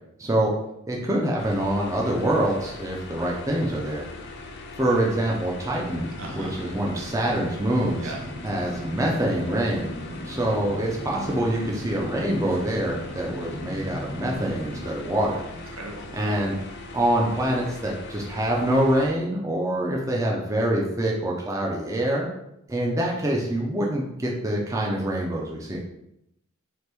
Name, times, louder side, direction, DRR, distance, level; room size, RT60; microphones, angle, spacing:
voice 1, 0.2-0.5 0.9-4.0 4.8-8.1 8.4-9.9 10.3-15.4 16.1-16.5 16.9-22.3 22.7-25.8, right 1 dB, 15° right, -2 dB, 0.4 m, -25 dB
sound 1, 1.4-19.1, left 2 dB, 55° left, 0.4 m, -41 dB
sound 2, 5.7-14.9, equal, 45° right, 1.1 m, -38 dB
voice 2, 6.2-6.6 8.0-8.3 15.7-16.4, right 3 dB, 75° right, 1 dB, 0.7 m, -38 dB
2.9 x 2.5 x 3.3 m, 0.83 s
head